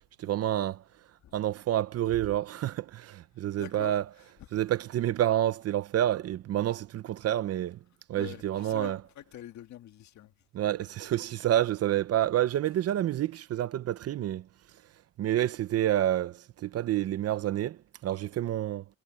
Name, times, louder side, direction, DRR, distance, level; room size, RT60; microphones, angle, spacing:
voice 1, 0.2-0.8 1.3-4.0 4.5-7.8 8.1-9.0 10.5-14.5 15.2-18.8, right 12 dB, 45° right, 0.7 m, -28 dB
voice 2, 3.6-3.9 8.1-10.3, left 12 dB, 55° left, 2.0 m, -45 dB
cardioid pair, 140°, 34 cm